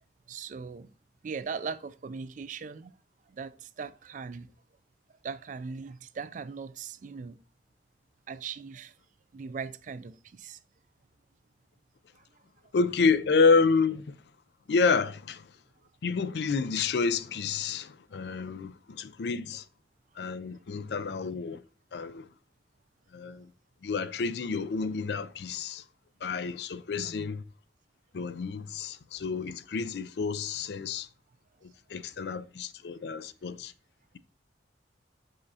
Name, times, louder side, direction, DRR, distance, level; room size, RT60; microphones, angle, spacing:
voice 1, 0.3-0.9 1.2-2.9 3.3-4.5 5.2-7.4 8.3-8.9 9.3-10.6 12.1-12.3 23.2-23.3 27.0-27.3, right 5 dB, 45° right, 0.3 m, -39 dB
voice 2, 12.7-14.2 14.7-15.5 16.0-19.6 20.2-21.6 21.9-22.3 23.1-23.5 23.8-25.8 26.2-27.4 28.1-31.1 31.6-33.7, left 4 dB, 65° left, 0.4 m, -29 dB
6.6 x 5.5 x 2.7 m
head